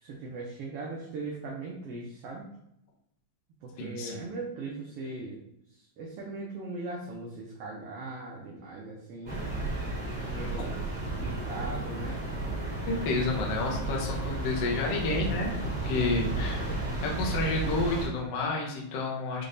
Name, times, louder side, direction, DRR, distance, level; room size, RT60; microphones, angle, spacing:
voice 1, 0.0-2.5 3.6-5.4 6.0-9.3 10.2-10.7 11.2-12.2, right 3 dB, 75° right, -3 dB, 1.4 m, -39 dB
voice 2, 3.8-4.2 10.6-10.7 12.9-19.5, left 2 dB, 65° left, -1 dB, 1.7 m, -30 dB
sound 1, 9.3-18.1, right 2 dB, 30° right, 1.5 m, -33 dB
5.7 x 3.3 x 2.6 m, 0.77 s
omnidirectional pair, 3.3 m